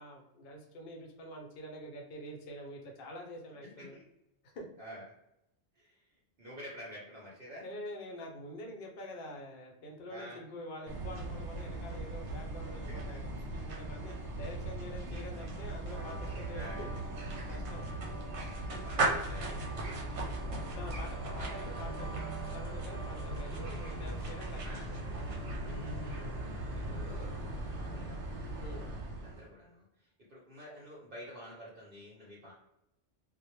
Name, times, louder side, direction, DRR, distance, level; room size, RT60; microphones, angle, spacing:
voice 1, 0.0-4.0 4.5-4.6 7.6-16.9 17.5-17.9 20.8-24.8 28.6-28.9, equal, 60° left, 1 dB, 0.7 m, -46 dB
voice 2, 3.6-4.0 4.8-5.1 5.8-5.9 6.4-7.7 10.1-10.4 12.8-13.2 16.5-16.8 18.7-20.0 21.8-21.9 24.6-24.9 25.6-27.3 27.6-29.0 29.2-29.8 30.3-32.5, equal, 55° right, -5 dB, 0.8 m, -50 dB
sound 1, 10.9-29.5, right 2 dB, 90° right, 0.9 m, -38 dB
sound 2, 15.9-25.5, right 2 dB, 35° right, 0.4 m, -50 dB
2.1 x 2.1 x 2.9 m, 0.84 s
omnidirectional pair, 1.2 m